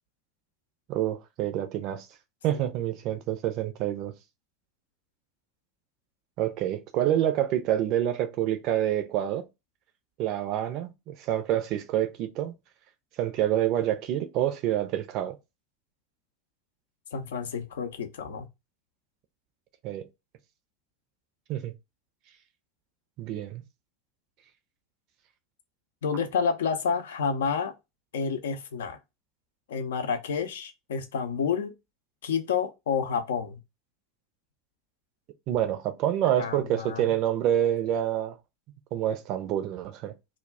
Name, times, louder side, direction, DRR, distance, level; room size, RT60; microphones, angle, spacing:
voice 1, 0.9-2.1 2.4-4.1 6.4-9.4 10.2-12.5 13.2-15.4 19.8-20.0 21.5-21.7 23.2-23.6 35.5-38.3 38.9-40.1, right 11 dB, 45° right, 0.4 m, -27 dB
voice 2, 17.1-18.5 26.0-27.7 28.1-29.0 29.7-31.7 32.2-33.6 36.4-37.1, left 6 dB, 65° left, 0.4 m, -29 dB
2.3 x 2.1 x 3.4 m
figure-of-eight pair, 80°, 0 cm